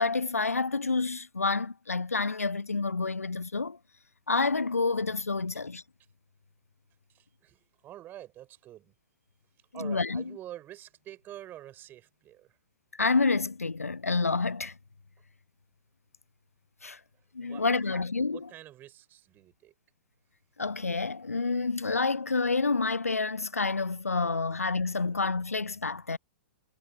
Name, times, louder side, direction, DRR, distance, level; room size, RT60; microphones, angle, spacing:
voice 1, 0.0-3.8 4.3-5.8 9.8-10.2 12.9-14.7 16.8-17.0 17.3-18.4 20.6-26.2, left 4 dB, 80° left, 0.5 m, -28 dB
voice 2, 7.1-8.9 9.7-12.6 17.4-19.7 25.0-25.2, right 13 dB, 25° right, 6.2 m, -47 dB
figure-of-eight pair, 105°, 8 cm